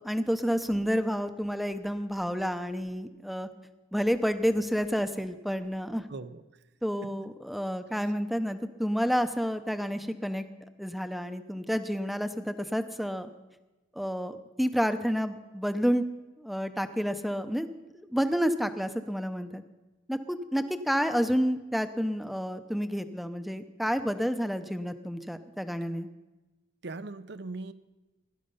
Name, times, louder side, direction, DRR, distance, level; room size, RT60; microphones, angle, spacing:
voice 1, 0.0-3.5 3.9-6.1 6.8-10.4 10.8-13.3 14.0-16.0 16.4-17.7 17.9-19.6 20.1-26.1, equal, ahead, 10 dB, 0.7 m, -29 dB
voice 2, 6.1-6.4 7.0-7.1 26.8-27.7, right 3 dB, 60° right, 13 dB, 0.7 m, -39 dB
17.0 x 11.5 x 5.5 m, 1.1 s
head